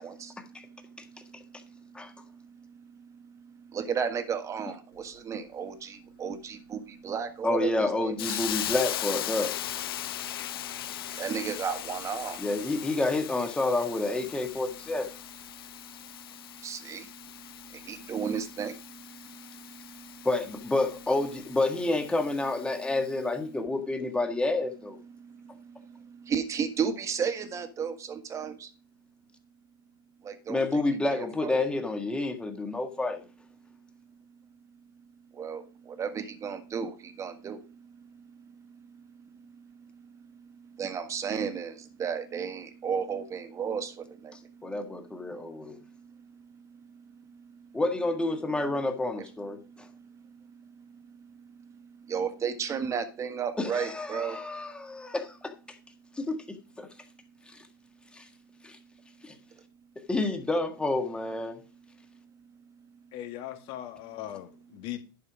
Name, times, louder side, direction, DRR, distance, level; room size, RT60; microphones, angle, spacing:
voice 1, 0.0-8.4 9.9-12.5 15.5-20.3 23.6-23.7 25.1-28.7 30.2-30.8 31.1-31.6 35.3-47.8 49.6-54.4, right 6 dB, 25° right, 1.6 m, -36 dB
voice 2, 7.4-9.5 12.4-15.1 20.2-25.0 30.5-33.2 44.6-45.8 47.7-49.9 53.6-55.8 56.2-56.9 58.1-58.3 58.6-58.8 59.2-59.3 60.1-61.6, left 2 dB, 10° left, 1.7 m, -29 dB
Hiss, 8.2-23.0, left 12 dB, 75° left, 0.6 m, -39 dB
voice 3, 63.1-65.0, left 12 dB, 45° left, 1.8 m, -39 dB
11.0 x 5.6 x 5.0 m
hypercardioid pair, 110°, 12 cm